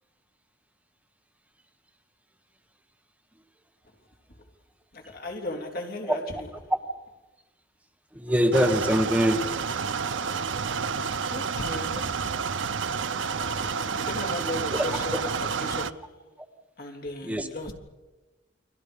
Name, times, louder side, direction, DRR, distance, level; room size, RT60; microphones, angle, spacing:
voice 1, 4.9-6.5 11.3-12.4 14.0-16.3 16.8-17.7, left 1 dB, 55° left, 3.3 m, -36 dB
voice 2, 8.1-9.4 13.6-13.8 14.7-15.2 17.2-17.5, equal, 10° right, 1.4 m, -24 dB
sound 1, 8.5-15.9, right 5 dB, 90° right, 0.7 m, -29 dB
30.0 x 24.5 x 5.3 m
head